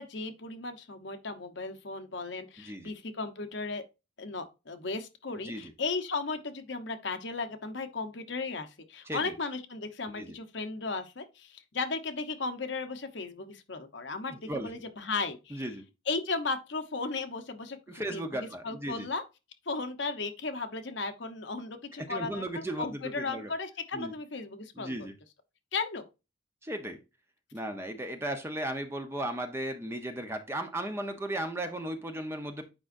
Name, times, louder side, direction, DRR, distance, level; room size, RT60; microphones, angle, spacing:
voice 1, 0.0-3.8 4.2-15.7 16.1-18.2 18.6-19.2 19.7-25.1 25.7-26.0, left 3 dB, 65° left, 0.9 m, -35 dB
voice 2, 2.6-2.9 5.4-5.7 9.1-9.3 10.1-10.3 14.4-14.7 15.5-15.8 17.9-19.1 22.0-23.5 23.9-24.1 24.8-25.1 26.6-27.0 27.5-32.6, right 1 dB, 15° right, 0.8 m, -36 dB
8.6 x 5.1 x 2.6 m
head